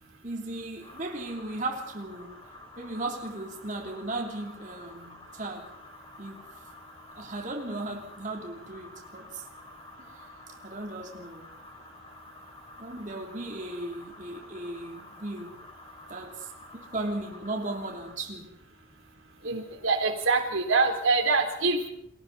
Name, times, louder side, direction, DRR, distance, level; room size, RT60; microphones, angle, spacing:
voice 1, 0.2-2.5 2.8-5.7 6.2-6.4 7.2-9.5 10.0-10.3 10.6-11.6 12.8-15.7 16.1-16.5 16.9-18.6 21.4-21.6, right 2 dB, 40° right, 3.1 m, -36 dB
sound 1, 0.8-18.1, left 2 dB, 25° left, 5.7 m, -50 dB
voice 2, 19.4-21.9, right 3 dB, 90° right, 3.5 m, -25 dB
30.0 x 22.5 x 4.1 m
head